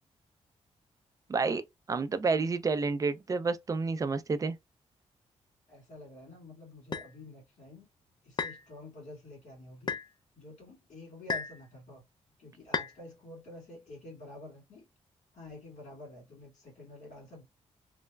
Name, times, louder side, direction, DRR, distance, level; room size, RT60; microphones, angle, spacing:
voice 1, 1.3-1.6 1.9-4.6, right 4 dB, 30° right, 0.4 m, -29 dB
voice 2, 5.7-7.9 8.2-10.0 10.3-12.0 12.4-14.8 15.3-17.4, left 1 dB, 80° left, 1.9 m, -49 dB
sound 1, 6.9-7.1 8.4-8.6 9.9-10.1 11.3-11.6 12.7-13.0, left 5 dB, 40° left, 0.4 m, -33 dB
3.2 x 2.0 x 2.3 m
cardioid pair, 100°, 12 cm